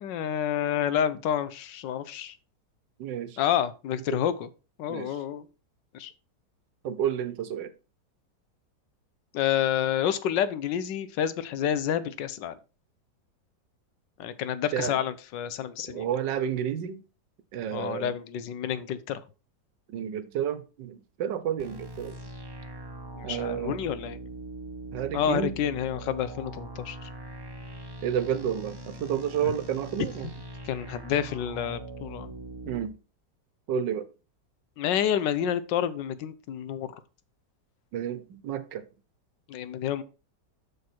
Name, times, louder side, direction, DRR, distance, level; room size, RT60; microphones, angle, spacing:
voice 1, 0.0-2.3 3.4-4.5 4.8-5.4 5.9-6.1 9.3-12.6 14.2-16.1 17.7-19.2 23.2-24.2 25.1-27.1 29.4-29.5 30.6-32.3 34.8-36.9 39.5-40.0, left 9 dB, 80° left, 1.4 m, -29 dB
voice 2, 3.0-3.4 4.1-4.2 4.9-5.2 6.8-7.7 14.7-15.0 15.9-17.0 17.5-18.1 19.9-22.2 23.2-23.8 24.9-25.5 28.0-30.3 32.7-33.0 33.7-34.1 37.9-38.8, right 9 dB, 80° right, 1.5 m, -30 dB
sound 1, 21.6-32.9, right 1 dB, 20° right, 0.6 m, -41 dB
6.9 x 6.5 x 4.3 m
omnidirectional pair, 1.9 m